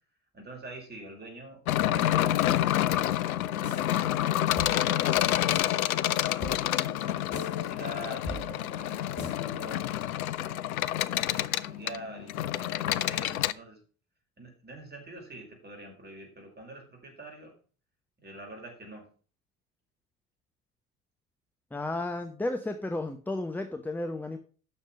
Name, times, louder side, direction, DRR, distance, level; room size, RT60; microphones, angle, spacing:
voice 1, 0.3-4.2 4.7-6.4 7.0-10.7 11.1-13.8 14.4-17.5 18.2-19.0, right 1 dB, 20° right, 1 dB, 5.3 m, -46 dB
sound 1, 1.7-13.5, left 13 dB, 70° left, 0.6 m, -28 dB
sound 2, 3.6-9.8, left 3 dB, 40° left, 3.7 m, -41 dB
voice 2, 21.7-24.4, left 2 dB, 5° left, 7 dB, 0.9 m, -33 dB
9.6 x 6.5 x 6.0 m, 0.39 s
figure-of-eight pair, 60°, 45 cm